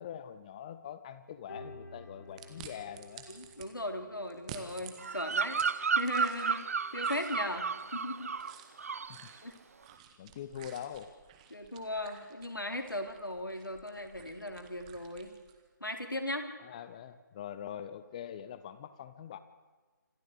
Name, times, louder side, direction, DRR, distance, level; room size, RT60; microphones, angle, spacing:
voice 1, 0.0-3.3 9.1-9.3 10.2-11.1 16.6-19.4, left 9 dB, 20° left, 13 dB, 0.7 m, -43 dB
sound 1, 1.5-10.9 11.2-11.6 12.0-12.1 12.8-12.9, left 2 dB, 70° left, 7.0 m, -56 dB
sound 2, 2.4-3.7 4.3-6.7 7.0-15.6, right 9 dB, 20° right, 1.7 m, -52 dB
voice 2, 3.3-5.6 5.9-6.7 6.9-7.7 7.9-8.3 9.4-9.5 11.5-15.3 15.8-16.5, left 1 dB, 85° left, 6 dB, 3.5 m, -37 dB
Bird vocalization bird call bird song, 5.0-8.5 8.8-9.2, right 5 dB, 45° right, 0.8 m, -32 dB
26.5 x 14.5 x 8.1 m, 1.4 s
figure-of-eight pair, 150°, 11 cm